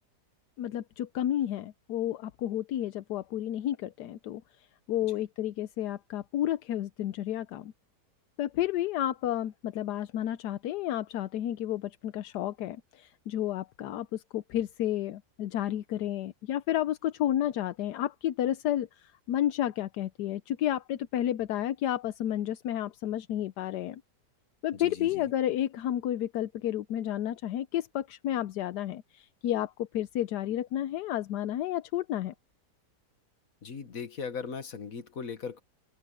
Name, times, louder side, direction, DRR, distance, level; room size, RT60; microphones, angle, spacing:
voice 1, 0.6-7.7 8.4-24.0 24.6-32.3, left 12 dB, 80° left, 1.2 m, -31 dB
voice 2, 24.7-25.2 33.6-35.6, left 5 dB, 55° left, 2.0 m, -38 dB
open air
omnidirectional pair, 1.8 m